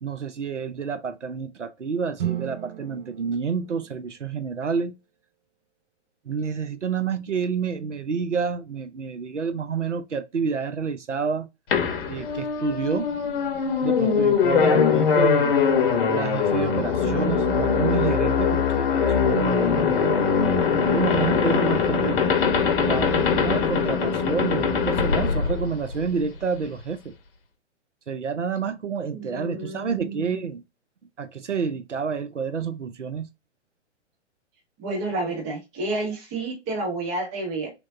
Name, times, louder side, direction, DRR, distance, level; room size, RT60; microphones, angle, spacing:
voice 1, 0.0-4.9 6.3-11.5 12.1-13.1 13.8-15.6 16.1-20.3 20.8-22.3 22.8-27.1 28.1-30.6 31.2-33.3, right 5 dB, 85° right, 0.6 m, -29 dB
sound 1, 2.2-4.6, right 11 dB, 50° right, 0.7 m, -34 dB
sound 2, 11.7-26.3, left 6 dB, 50° left, 0.8 m, -22 dB
voice 2, 29.1-30.3 34.8-37.7, right 2 dB, 10° right, 0.3 m, -30 dB
3.4 x 3.0 x 2.5 m
figure-of-eight pair, 115°, 36 cm